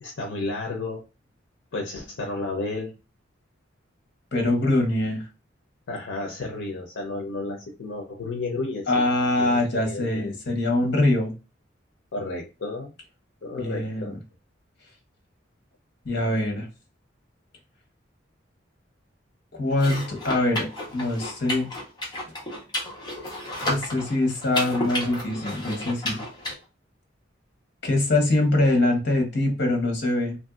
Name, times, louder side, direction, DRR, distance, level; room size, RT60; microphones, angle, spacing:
voice 1, 0.0-1.0 1.7-2.9 5.9-10.2 12.1-12.9 13.4-14.2, left 2 dB, 80° left, 0 dB, 0.6 m, -32 dB
voice 2, 4.3-5.3 8.9-11.3 13.6-14.2 16.0-16.7 19.5-21.7 23.6-26.2 27.8-30.4, left 2 dB, 65° left, 1 dB, 1.1 m, -23 dB
sound 1, 19.7-26.5, left 1 dB, 25° left, 0.9 m, -32 dB
3.0 x 2.6 x 2.3 m, 0.30 s
head